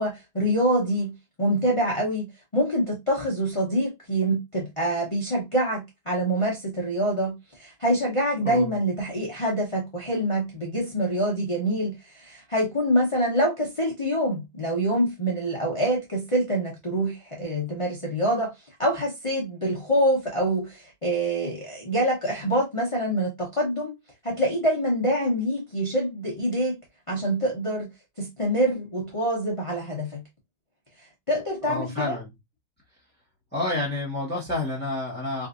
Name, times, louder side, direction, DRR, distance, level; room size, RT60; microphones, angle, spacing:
voice 1, 0.0-18.5 18.8-24.0 24.2-26.8 27.1-27.9 28.2-30.2 31.3-32.2, right 1 dB, 55° left, 0.3 m, -25 dB
voice 2, 31.6-32.3 33.5-35.5, left 2 dB, 5° left, 1.0 m, -29 dB
3.9 x 2.6 x 2.5 m
omnidirectional pair, 2.2 m